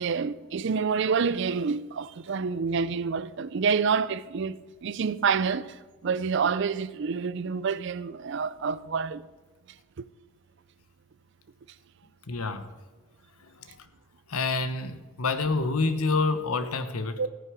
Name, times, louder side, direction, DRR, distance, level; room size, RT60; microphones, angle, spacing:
voice 1, 0.0-9.3 10.0-10.1 17.2-17.3, right 5 dB, 55° right, 0.4 m, -28 dB
voice 2, 12.3-12.7 14.3-17.2, left 3 dB, 90° left, 1.0 m, -27 dB
15.0 x 9.5 x 5.0 m
head